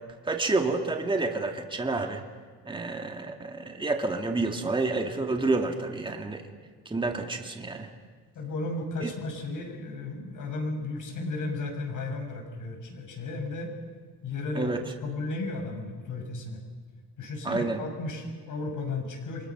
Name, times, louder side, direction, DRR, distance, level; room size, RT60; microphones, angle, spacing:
voice 1, 0.2-2.2 2.6-6.4 6.9-7.9 9.0-9.1 14.6-14.8 17.4-17.8, right 3 dB, 15° right, 3 dB, 2.2 m, -29 dB
voice 2, 8.4-13.7 14.2-14.7 15.0-16.6 17.2-19.5, left 3 dB, 55° left, 4 dB, 6.9 m, -34 dB
29.5 x 24.5 x 6.1 m, 1.5 s
cardioid pair, 110°, 38 cm